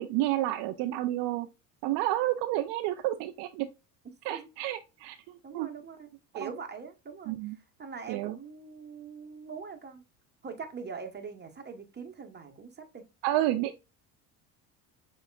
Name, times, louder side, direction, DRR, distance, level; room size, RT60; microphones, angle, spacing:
voice 1, 0.0-1.5 1.8-3.7 4.2-5.7 6.4-6.5 7.3-7.5 8.1-8.4 13.2-13.8, right 14 dB, 60° right, 0.6 m, -30 dB
voice 2, 5.4-6.1 6.3-10.0 10.4-13.0, right 5 dB, 20° right, 1.2 m, -43 dB
6.9 x 3.1 x 2.4 m
hypercardioid pair, 80°, 48 cm